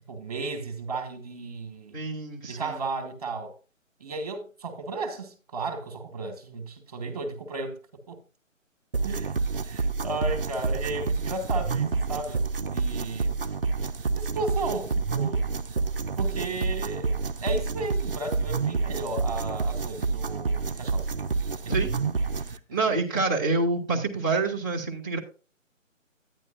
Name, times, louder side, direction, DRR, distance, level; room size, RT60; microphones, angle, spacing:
voice 1, 0.1-2.0 2.5-3.5 4.0-7.8 8.1-8.2 9.0-9.4 9.6-13.4 14.1-15.4 16.2-21.1 21.8-22.0 22.7-23.0, right 3 dB, 30° right, 1.2 m, -34 dB
voice 2, 1.9-2.8 21.7-21.9 22.7-25.2, right 3 dB, 15° left, 0.6 m, -27 dB
sound 1, 8.9-22.6, right 4 dB, 45° right, 0.5 m, -28 dB
10.5 x 9.4 x 2.4 m
figure-of-eight pair, 165°, 40 cm